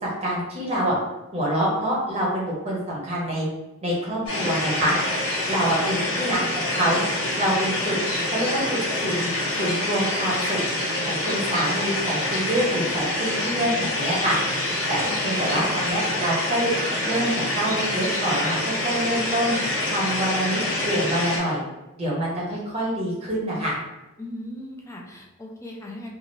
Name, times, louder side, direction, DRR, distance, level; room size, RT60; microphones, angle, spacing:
voice 1, 0.0-1.0 1.3-3.5 3.8-5.0 5.5-7.0 7.4-8.0 8.3-9.3 9.6-10.6 11.1-14.4 14.9-16.7 17.0-19.6 19.9-21.6 22.0-23.8, right 1 dB, 30° right, -4 dB, 0.7 m, -26 dB
sound 1, 4.3-21.4, left 1 dB, 90° left, 1.2 m, -26 dB
voice 2, 5.7-6.2 15.1-15.9 24.2-26.1, left 1 dB, 15° left, -1 dB, 0.4 m, -39 dB
2.6 x 2.4 x 3.0 m, 1.0 s
head